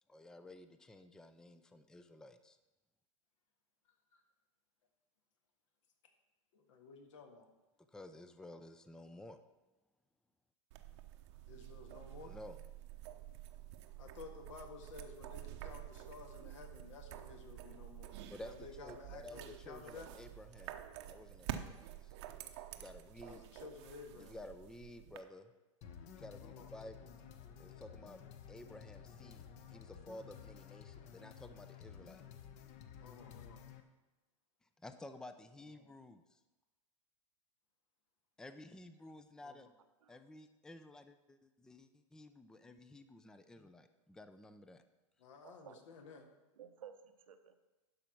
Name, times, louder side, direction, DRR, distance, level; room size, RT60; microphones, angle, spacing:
voice 1, 0.1-2.6 7.9-9.4 12.2-12.6 18.3-20.8 21.1-22.1 22.7-23.4 24.2-25.5 26.1-27.1 27.6-28.2 28.5-29.4 29.7-32.2 34.8-36.4 38.4-39.7 40.1-44.8, left 1 dB, 5° left, 10 dB, 0.5 m, -53 dB
voice 2, 6.5-7.5 11.5-12.3 14.0-18.2 18.4-20.1 23.2-24.4 26.4-26.7 33.0-33.6 35.7-35.9 39.4-39.6 42.6-42.7 45.2-46.3, left 4 dB, 70° left, 5 dB, 1.7 m, -53 dB
sound 1, 10.7-25.2, right 12 dB, 60° right, 0.9 m, -49 dB
sound 2, 25.8-33.8, left 8 dB, 45° left, 1.0 m, -54 dB
voice 3, 45.4-45.9 46.5-47.6, right 8 dB, 85° right, 8 dB, 0.9 m, -55 dB
11.5 x 5.0 x 5.9 m, 1.1 s
hypercardioid pair, 115°, 17 cm